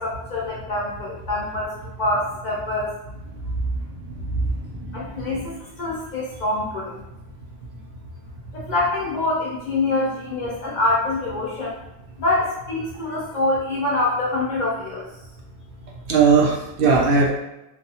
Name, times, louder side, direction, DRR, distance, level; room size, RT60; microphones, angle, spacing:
voice 1, 0.0-1.7 2.0-3.0 4.9-7.0 8.5-11.8 12.2-15.1, left 2 dB, 55° left, -4 dB, 0.5 m, -25 dB
voice 2, 4.1-5.4 16.1-17.3, right 4 dB, 65° right, -2 dB, 0.7 m, -20 dB
2.4 x 2.3 x 2.7 m, 0.92 s
omnidirectional pair, 1.1 m